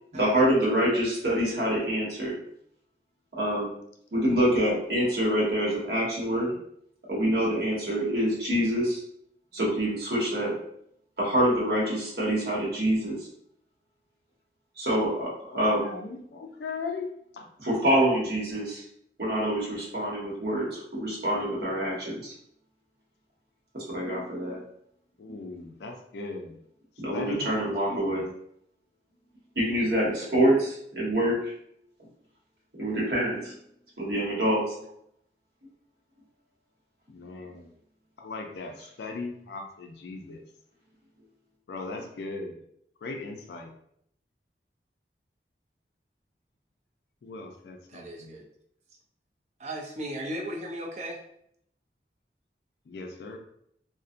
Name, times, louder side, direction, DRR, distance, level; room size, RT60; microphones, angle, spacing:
voice 1, 0.1-2.3 3.4-3.7 4.1-6.6 7.1-9.0 9.5-10.5 11.2-13.2 14.8-15.8 17.6-18.8 19.2-22.3 23.7-24.6 27.0-28.3 29.6-31.5 32.8-33.5 34.0-34.6, right 1 dB, 70° right, -5 dB, 0.9 m, -26 dB
voice 2, 15.5-17.5 25.2-26.6 27.1-28.2 37.1-37.7 38.2-40.4 41.7-42.6 43.0-43.7 47.2-48.4 52.9-53.4, left 3 dB, 75° left, 3 dB, 0.3 m, -38 dB
voice 3, 47.9-48.5 49.6-51.2, right 1 dB, 40° right, -1 dB, 0.4 m, -36 dB
2.5 x 2.1 x 2.4 m, 0.71 s
head